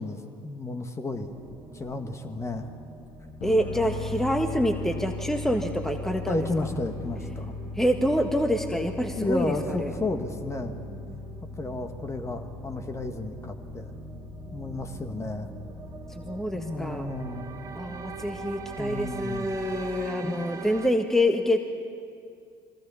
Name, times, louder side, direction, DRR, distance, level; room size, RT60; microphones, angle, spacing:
voice 1, 0.0-1.3 1.7-2.7 6.3-7.5 9.2-10.8 11.6-13.9 14.5-15.5 16.5-17.5 18.8-19.5 20.2-20.3, left 2 dB, 25° left, 6 dB, 1.7 m, -32 dB
sound 1, 1.1-20.9, right 4 dB, 25° right, 2.1 m, -44 dB
sound 2, 3.4-19.5, left 3 dB, 65° left, 2.2 m, -39 dB
voice 2, 3.4-6.4 7.8-9.9 16.1-17.1 17.7-21.6, equal, 5° left, 5 dB, 1.5 m, -26 dB
23.5 x 17.0 x 7.1 m, 2.4 s
hypercardioid pair, 60°, 12 cm